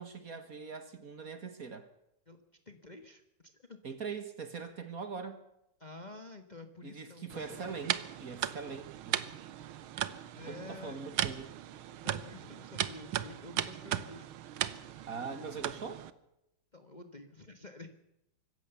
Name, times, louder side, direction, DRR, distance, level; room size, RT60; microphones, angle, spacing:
voice 1, 0.0-1.9 3.8-5.4 6.8-9.3 10.5-11.5 15.1-16.1, right 5 dB, 45° right, 10 dB, 1.8 m, -42 dB
voice 2, 2.6-3.8 5.8-7.8 10.3-11.0 11.9-14.3 16.7-17.9, left 2 dB, 25° left, 7 dB, 1.3 m, -49 dB
sound 1, 7.3-16.1, right 11 dB, 80° right, 1.7 m, -37 dB
25.0 x 15.0 x 7.0 m, 0.84 s
omnidirectional pair, 2.3 m